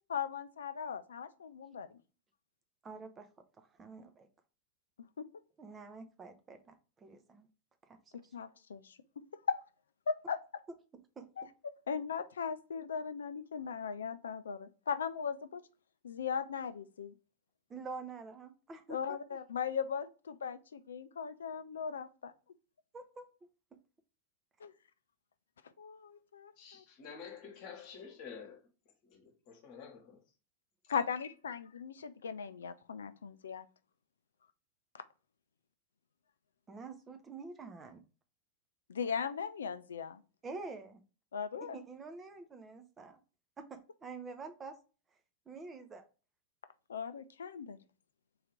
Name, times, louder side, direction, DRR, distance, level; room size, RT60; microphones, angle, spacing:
voice 1, 0.0-1.9 5.2-5.3 8.3-9.0 9.5-9.6 10.1-10.4 11.4-11.5 11.9-15.6 16.0-17.1 18.9-22.3 24.6-24.7 25.8-26.8 30.9-33.6 38.9-40.2 41.3-41.8 46.9-47.8, left 6 dB, 65° left, 0.4 m, -38 dB
voice 2, 2.8-3.3 3.6-4.3 5.6-7.5 7.9-8.0 8.2-8.3 11.2-11.3 17.7-19.2 22.9-23.3 36.7-38.0 40.4-41.0 41.6-43.2 43.6-44.8 45.5-46.0, right 4 dB, 20° right, 0.6 m, -47 dB
voice 3, 26.6-28.6 29.0-30.2 30.8-31.0, left 6 dB, 45° left, 1.2 m, -49 dB
3.9 x 2.8 x 4.7 m
figure-of-eight pair, 90°, 0 cm